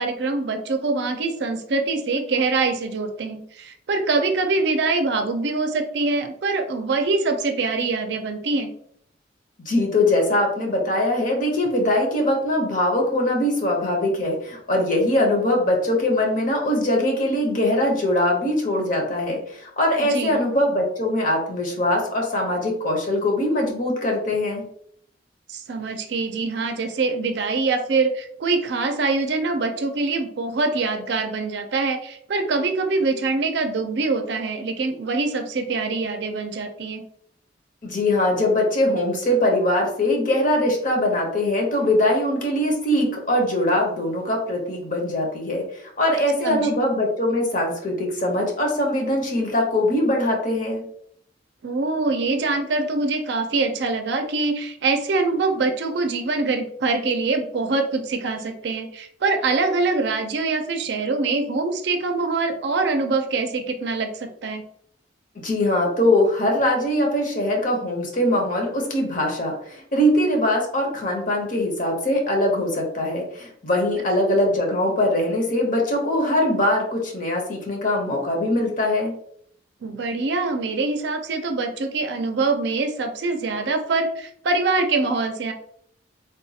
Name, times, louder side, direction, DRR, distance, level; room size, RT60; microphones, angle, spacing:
voice 1, 0.0-8.7 20.0-20.5 25.5-37.0 46.4-46.7 51.6-64.6 79.8-85.5, right 3 dB, 65° right, 6 dB, 0.4 m, -24 dB
voice 2, 9.6-24.6 37.8-45.6 46.0-50.8 65.4-79.1, left 1 dB, 45° left, 0 dB, 0.9 m, -22 dB
3.6 x 2.3 x 2.7 m, 0.66 s
head